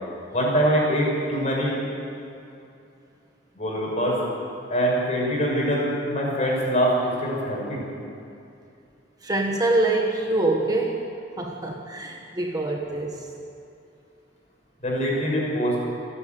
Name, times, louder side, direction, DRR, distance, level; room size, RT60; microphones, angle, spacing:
voice 1, 0.3-1.7 3.5-4.2 4.7-7.8 14.8-15.8, equal, 40° left, -3 dB, 6.5 m, -23 dB
voice 2, 9.2-11.0 11.4-13.3, right 2 dB, 20° right, 1 dB, 1.4 m, -25 dB
28.5 x 10.0 x 9.3 m, 2.6 s
head